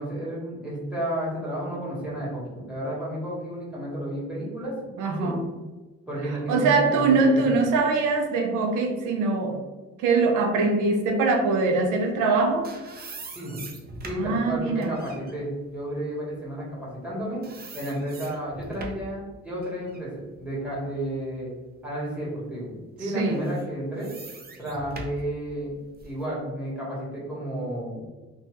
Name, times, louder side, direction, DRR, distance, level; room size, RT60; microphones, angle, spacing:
voice 1, 0.0-4.9 5.2-5.3 6.1-7.4 13.3-13.7 14.0-17.4 17.7-21.5 21.8-24.1 24.6-25.7 26.0-28.0, right 1 dB, 5° right, -6 dB, 1.3 m, -32 dB
voice 2, 5.0-5.5 6.5-9.6 10.0-12.7 14.1-14.9 23.1-23.4, right 3 dB, 90° right, 3 dB, 0.5 m, -22 dB
sound 1, 12.2-17.1 17.4-19.2 19.6-21.6 22.1-22.2 23.2-26.2, right 2 dB, 30° right, 0.5 m, -43 dB
2.7 x 2.2 x 3.0 m, 1.2 s
cardioid pair, 90°, 30 cm